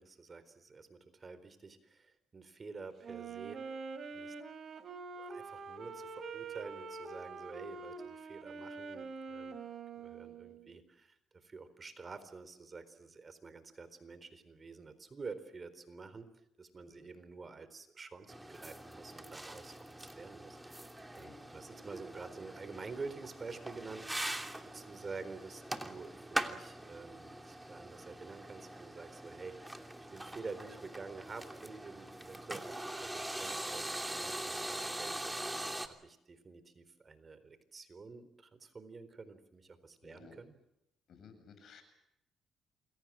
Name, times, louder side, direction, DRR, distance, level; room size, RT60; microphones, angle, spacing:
voice 1, 0.0-3.7 4.1-4.3 5.1-9.6 10.0-11.2 11.4-16.3 16.6-20.9 21.1-24.4 24.7-29.6 30.1-35.4 35.8-40.5, right 4 dB, 35° right, 12 dB, 4.1 m, -49 dB
Wind instrument woodwind instrument, 3.0-10.8, right 4 dB, 55° right, 3.1 m, -45 dB
sound 1, 18.3-35.9, right 1 dB, 10° right, 2.9 m, -42 dB
voice 2, 40.0-40.4 41.1-41.8, left 6 dB, 65° left, 9 dB, 7.9 m, -56 dB
28.5 x 22.5 x 7.5 m, 0.83 s
cardioid pair, 90°, 0 cm